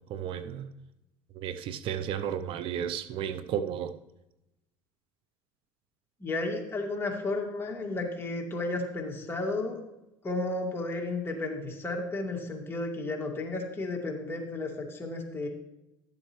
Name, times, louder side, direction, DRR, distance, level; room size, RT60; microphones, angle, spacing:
voice 1, 0.1-0.7 1.4-3.9, right 9 dB, 55° right, 12 dB, 0.6 m, -33 dB
voice 2, 6.2-9.8 10.2-15.5, left 2 dB, 20° left, 1 dB, 2.2 m, -33 dB
12.0 x 7.6 x 3.1 m, 0.92 s
supercardioid pair, 95°, 10 cm